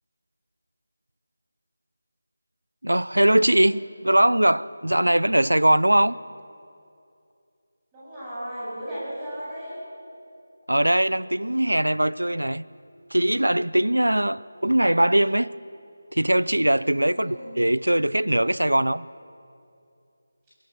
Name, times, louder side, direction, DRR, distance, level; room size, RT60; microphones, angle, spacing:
voice 1, 2.8-6.2 10.7-12.6 13.1-15.5 16.1-19.1, right 1 dB, 85° right, 19 dB, 0.5 m, -21 dB
voice 2, 7.9-9.8 17.0-17.6, equal, 15° right, -10 dB, 7.2 m, -35 dB
23.0 x 15.5 x 7.3 m, 2.5 s
figure-of-eight pair, 160°, 0 cm